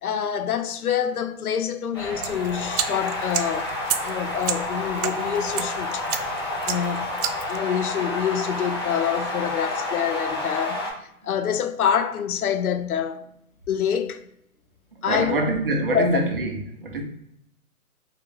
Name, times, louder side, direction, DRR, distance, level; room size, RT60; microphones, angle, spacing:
voice 1, 0.0-3.7 4.0-6.0 6.6-7.1 7.5-10.8 11.2-13.2 13.7-14.2 15.0-15.4 15.9-16.2, left 8 dB, 75° left, 0.6 m, -26 dB
sound 1, 1.9-10.9, left 2 dB, 20° left, 0.5 m, -30 dB
sound 2, 2.2-7.6, right 9 dB, 80° right, 0.5 m, -32 dB
voice 2, 15.1-17.0, right 2 dB, 40° right, 0.6 m, -25 dB
3.8 x 2.3 x 3.1 m
hypercardioid pair, 160°, 44 cm